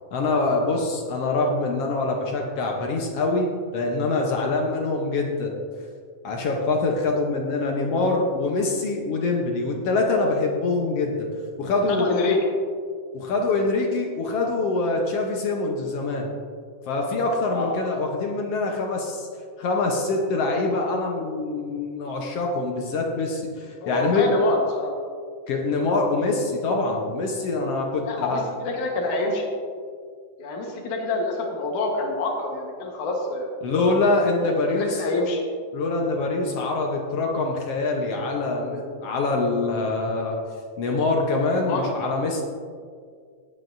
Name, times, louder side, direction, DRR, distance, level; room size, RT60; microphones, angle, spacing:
voice 1, 0.1-5.6 6.2-11.3 11.6-12.2 13.1-16.3 16.9-19.3 19.6-24.3 25.5-28.4 33.6-35.0 35.7-40.4 40.8-42.4, left 3 dB, 65° left, 1 dB, 1.7 m, -24 dB
voice 2, 11.8-12.4 17.5-17.8 23.8-24.9 28.0-29.4 30.4-33.5 34.4-35.4 41.5-41.9, left 2 dB, 90° left, 0 dB, 2.8 m, -27 dB
18.5 x 8.1 x 2.6 m, 2.1 s
omnidirectional pair, 3.4 m